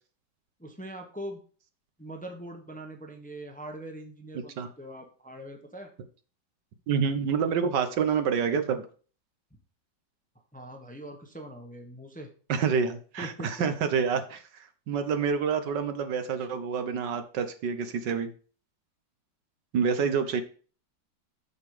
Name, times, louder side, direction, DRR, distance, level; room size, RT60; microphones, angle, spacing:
voice 1, 0.6-1.4 2.0-5.9 10.5-12.3 13.2-13.5, right 1 dB, 5° left, 3 dB, 1.1 m, -42 dB
voice 2, 6.9-8.9 12.5-18.3 19.7-20.4, right 6 dB, 75° right, 9 dB, 1.6 m, -27 dB
7.2 x 7.0 x 4.9 m, 0.40 s
omnidirectional pair, 1.9 m